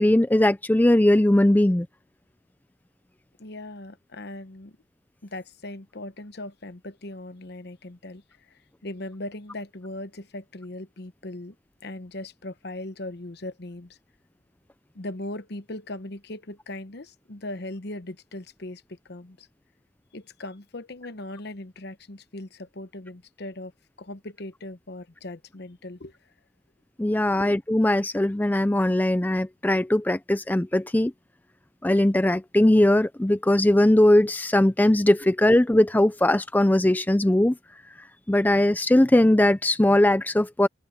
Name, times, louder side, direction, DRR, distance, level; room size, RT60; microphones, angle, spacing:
voice 1, 0.0-1.9 27.0-31.1 31.8-37.6 38.3-40.7, left 1 dB, 10° left, 0.4 m, -20 dB
voice 2, 3.4-4.8 5.2-8.2 8.5-11.5 11.8-14.0 14.9-19.5 20.1-23.7 24.0-26.1 27.1-27.4, left 1 dB, 55° left, 1.0 m, -39 dB
open air
head